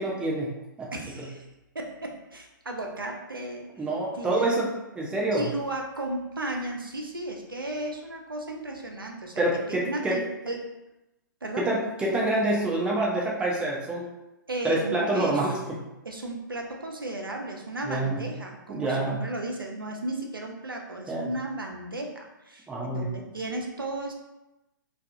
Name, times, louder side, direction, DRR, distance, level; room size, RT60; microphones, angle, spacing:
voice 1, 0.0-0.9 3.8-5.5 9.4-10.2 11.6-14.1 14.6-15.5 17.9-18.2 18.7-19.2 21.1-21.3 22.7-23.1, right 2 dB, 10° right, -4 dB, 0.4 m, -27 dB
voice 2, 0.9-1.5 1.7-3.7 4.1-4.6 5.3-10.6 11.4-11.7 14.5-15.4 16.1-24.1, right 2 dB, 90° right, 1 dB, 0.5 m, -34 dB
2.3 x 2.3 x 2.5 m, 0.97 s
figure-of-eight pair, 120°, 11 cm